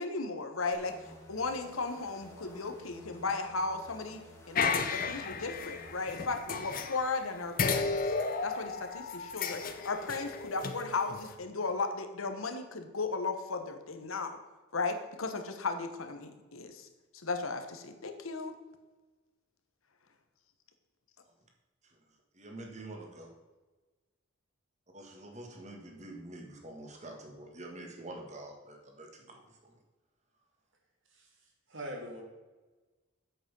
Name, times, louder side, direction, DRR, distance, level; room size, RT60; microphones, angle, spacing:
voice 1, 0.0-8.1 8.4-14.4 14.7-16.9 17.2-18.5, left 3 dB, 90° left, 7 dB, 1.2 m, -36 dB
sound 1, 0.7-6.3, equal, 15° left, 1.6 m, -53 dB
sound 2, 4.5-7.2 7.6-11.3, left 5 dB, 45° left, 0.7 m, -33 dB
voice 2, 22.4-23.3 24.9-29.8, right 1 dB, 35° right, 2 dB, 1.7 m, -46 dB
voice 3, 31.1-32.2, equal, 65° right, 0 dB, 2.5 m, -43 dB
7.9 x 7.8 x 5.4 m, 1.2 s
head